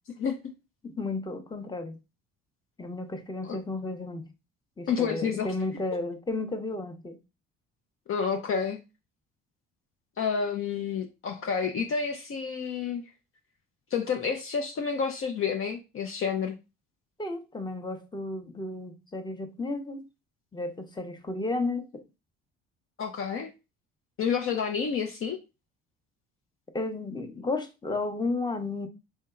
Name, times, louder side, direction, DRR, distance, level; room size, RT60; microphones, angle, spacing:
voice 1, 0.8-2.0 2.8-4.3 4.8-7.2 17.2-20.0 20.5-22.0 26.7-28.9, left 2 dB, 15° left, 0.8 m, -33 dB
voice 2, 4.9-5.5 8.1-8.8 10.2-13.0 13.9-16.6 23.0-23.5 24.2-25.4, left 6 dB, 45° left, 0.6 m, -29 dB
4.3 x 2.7 x 2.4 m
supercardioid pair, 70°, 30 cm